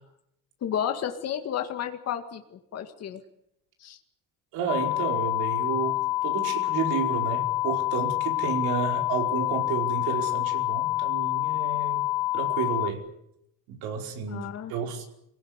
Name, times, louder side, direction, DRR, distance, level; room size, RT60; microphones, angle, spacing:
voice 1, 0.6-3.2 3.8-4.0 14.3-14.7, left 9 dB, 45° left, 5 dB, 2.0 m, -32 dB
voice 2, 4.5-12.1 12.3-13.0 13.7-15.1, right 7 dB, 85° right, 3 dB, 5.1 m, -31 dB
sound 1, 4.7-12.9, left 17 dB, 75° left, 1.2 m, -27 dB
26.0 x 17.5 x 9.7 m, 0.79 s
cardioid pair, 135°, 35 cm